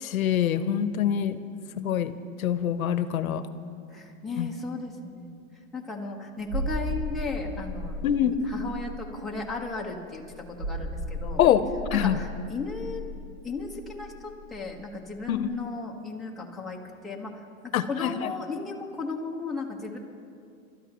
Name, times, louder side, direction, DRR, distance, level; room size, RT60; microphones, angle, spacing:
voice 1, 0.0-1.4 1.8-2.1 2.4-3.4 4.4-4.5 8.0-8.4 11.4-11.6 11.9-12.2 15.3-15.5 17.7-18.3, left 10 dB, 80° left, 12 dB, 0.9 m, -24 dB
voice 2, 3.9-5.3 5.7-8.0 8.5-10.2 10.6-11.4 11.9-13.0 13.4-16.8 17.0-17.3 17.9-20.0, left 3 dB, ahead, -4 dB, 1.2 m, -35 dB
sound 1, 6.5-14.9 15.2-15.3, equal, 40° right, 1.8 m, -35 dB
29.0 x 13.0 x 3.0 m, 2.4 s
hypercardioid pair, 150°, 41 cm